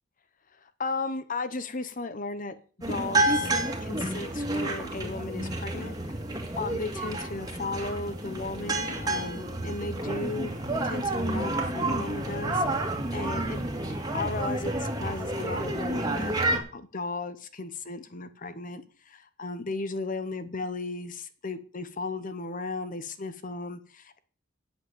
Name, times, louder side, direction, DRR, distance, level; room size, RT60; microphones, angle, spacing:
voice 1, 0.8-2.6 2.9-3.5 3.8-5.9 6.6-10.5 10.8-12.6 13.1-13.6 14.1-24.2, left 3 dB, 45° left, 12 dB, 1.0 m, -35 dB
sound 1, 2.8-16.6, right 2 dB, 20° right, 2.3 m, -30 dB
8.2 x 7.9 x 8.9 m, 0.41 s
head